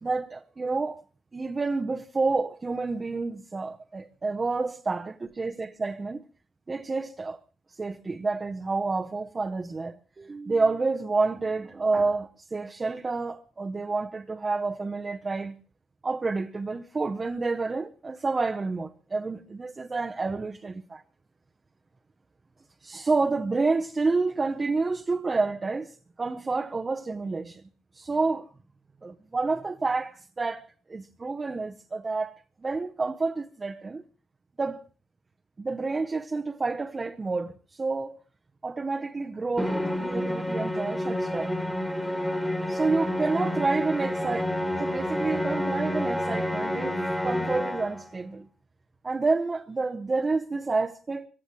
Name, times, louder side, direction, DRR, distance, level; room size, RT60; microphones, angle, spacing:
voice 1, 0.0-1.0 1.3-6.2 6.7-7.4 7.7-15.6 16.0-21.0 22.8-27.6 27.9-28.5 29.0-34.0 34.6-34.8 35.6-38.2 38.6-41.5 42.7-47.0 47.2-48.5 49.0-51.3, right 3 dB, 25° right, 0.8 m, -29 dB
Musical instrument, 39.6-48.1, left 1 dB, 5° left, 1.7 m, -29 dB
23.5 x 16.0 x 3.1 m
cardioid pair, 90°, 0 cm